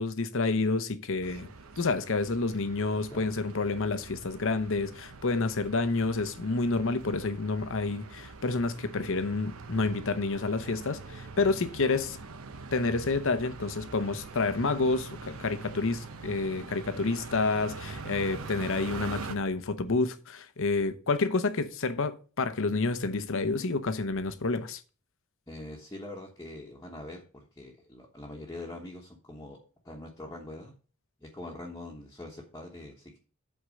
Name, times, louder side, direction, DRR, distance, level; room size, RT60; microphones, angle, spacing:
voice 1, 0.0-1.5 1.8-12.2 12.7-24.8, left 3 dB, 60° left, 0.8 m, -29 dB
sound 1, 1.2-19.4, right 3 dB, 70° right, 0.9 m, -44 dB
voice 2, 25.5-29.6 29.8-30.7 31.2-33.2, left 1 dB, 15° left, 1.1 m, -43 dB
8.1 x 4.4 x 6.3 m
head